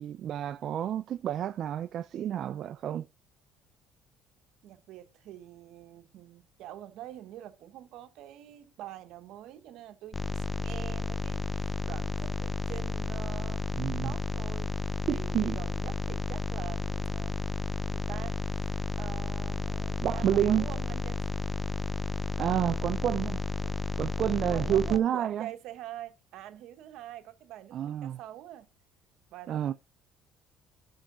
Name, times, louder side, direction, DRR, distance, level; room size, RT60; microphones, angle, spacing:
voice 1, 0.0-3.1 13.7-14.1 15.1-15.6 20.0-20.7 22.4-23.4 24.0-25.5 27.7-28.2 29.5-29.7, right 10 dB, 50° right, 0.4 m, -29 dB
voice 2, 4.6-13.7 14.0-17.4 17.9-21.2 22.6-23.1 23.6-23.8 24.4-28.7 29.3-29.7, right 12 dB, 70° right, 1.1 m, -45 dB
sound 1, 10.1-25.0, left 3 dB, 20° left, 0.4 m, -32 dB
6.4 x 5.6 x 6.0 m
cardioid pair, 115°, 0 cm